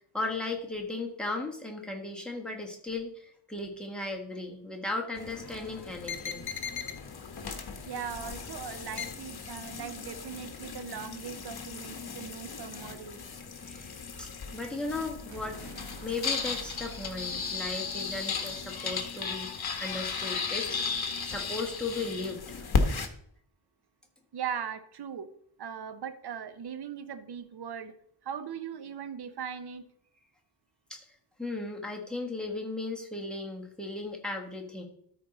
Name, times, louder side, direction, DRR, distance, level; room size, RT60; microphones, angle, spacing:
voice 1, 0.0-6.4 13.6-15.6 16.0-20.9 21.2-22.6 30.9-31.0 31.4-34.8, left 2 dB, ahead, -1 dB, 1.4 m, -36 dB
sound 1, 5.2-23.1, left 5 dB, 55° left, 1.0 m, -35 dB
voice 2, 7.9-13.3 24.3-25.3 25.6-27.9 28.2-29.8, right 8 dB, 55° right, 10 dB, 0.7 m, -39 dB
sound 2, 15.3-19.6, right 3 dB, 80° right, 1.1 m, -50 dB
13.0 x 4.6 x 3.8 m, 0.67 s
wide cardioid pair, 130°, 46 cm